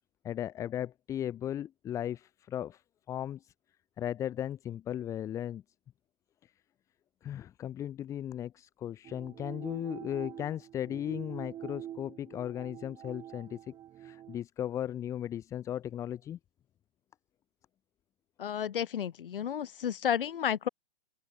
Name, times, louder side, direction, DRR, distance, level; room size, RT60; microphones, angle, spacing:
voice 1, 0.2-2.8 3.1-3.5 4.0-5.6 6.4-6.5 7.2-16.4, left 11 dB, 10° left, 1.6 m, -36 dB
sound 1, 9.0-14.4, right 11 dB, 15° right, 6.4 m, -46 dB
voice 2, 18.4-20.7, left 9 dB, 60° left, 5.1 m, -32 dB
open air
hypercardioid pair, 175°, 31 cm